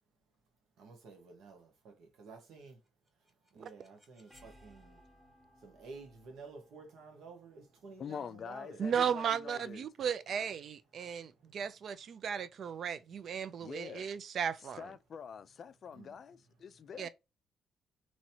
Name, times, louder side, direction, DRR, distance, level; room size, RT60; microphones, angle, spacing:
voice 1, 0.8-2.8 3.5-5.0 5.6-8.9 11.0-11.4 15.9-16.2, right 4 dB, 75° right, 1.2 m, -52 dB
sound 1, 2.9-8.7, equal, 15° right, 1.3 m, -64 dB
voice 2, 8.0-9.9 13.6-14.1 14.8-17.1, left 7 dB, 55° left, 0.3 m, -45 dB
voice 3, 8.8-14.9 17.0-17.1, right 7 dB, 60° right, 0.4 m, -35 dB
3.0 x 2.8 x 2.8 m
cardioid pair, 90°, 0 cm